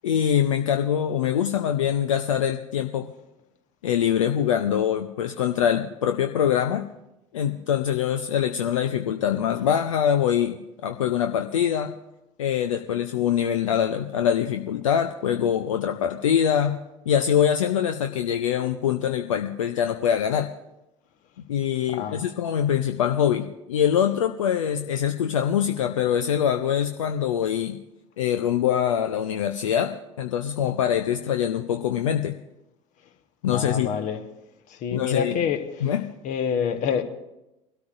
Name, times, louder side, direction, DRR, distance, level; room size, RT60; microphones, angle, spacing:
voice 1, 0.0-3.1 3.8-6.8 7.3-11.9 12.4-16.8 17.1-20.5 21.5-27.8 28.2-32.3 33.4-33.9 34.9-35.4 35.8-36.0, left 9 dB, 70° left, 0.6 m, -24 dB
voice 2, 21.9-22.2 33.5-34.2 34.7-35.6 36.2-37.0, left 7 dB, 45° left, 1.3 m, -27 dB
22.5 x 13.0 x 2.6 m
figure-of-eight pair, 70°, 17 cm